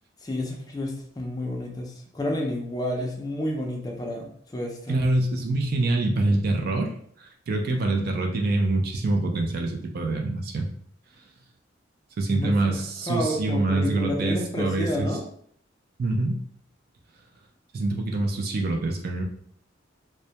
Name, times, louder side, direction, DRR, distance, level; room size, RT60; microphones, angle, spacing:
voice 1, 0.2-5.0 12.3-12.8 13.1-15.2, left 1 dB, 20° left, 1 dB, 0.4 m, -30 dB
voice 2, 4.9-10.7 12.2-15.2 16.0-16.4 17.7-19.2, right 2 dB, 50° right, 3 dB, 0.4 m, -25 dB
2.1 x 2.1 x 2.7 m, 0.63 s
head